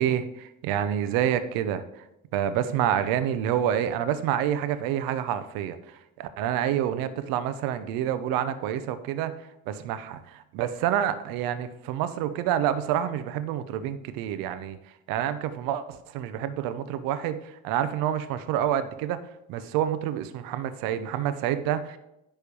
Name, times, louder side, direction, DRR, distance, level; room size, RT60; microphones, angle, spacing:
voice 1, 0.0-2.0 2.3-9.3 9.7-14.8 15.1-19.2 19.5-22.0, right 10 dB, 70° right, 12 dB, 0.9 m, -28 dB
10.5 x 3.5 x 6.9 m, 0.86 s
hypercardioid pair, 70°, 36 cm